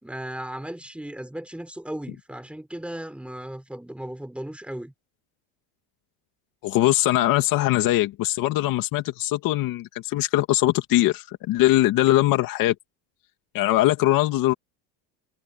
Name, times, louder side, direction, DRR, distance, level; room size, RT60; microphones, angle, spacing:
voice 1, 0.0-4.9, right 1 dB, 5° right, 3.9 m, -36 dB
voice 2, 6.6-12.7 13.5-14.5, left 16 dB, 55° left, 2.3 m, -21 dB
cardioid pair, 160°, 41 cm